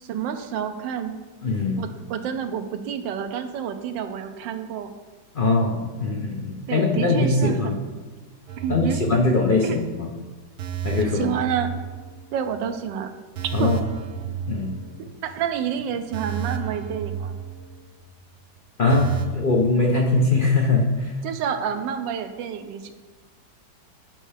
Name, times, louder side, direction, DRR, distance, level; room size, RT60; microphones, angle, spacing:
voice 1, 0.0-1.1 1.8-4.9 6.7-7.8 8.6-9.0 9.6-9.8 11.1-11.7 12.3-13.1 13.6-13.7 15.2-17.3 21.2-22.9, right 8 dB, 90° right, 8 dB, 1.3 m, -29 dB
voice 2, 1.4-1.9 5.3-7.8 8.7-10.1 10.8-11.3 13.5-13.8 14.5-14.8 18.8-21.2, left 3 dB, 80° left, 0 dB, 0.4 m, -21 dB
sound 1, 8.5-9.7 10.0-10.2 10.6-12.5 12.8-12.9 13.4-15.3 15.6-15.7 16.1-18.1 18.3-18.4 18.9-19.3, right 8 dB, 65° right, 1.2 m, -32 dB
10.5 x 5.4 x 3.3 m, 1.3 s
omnidirectional pair, 1.9 m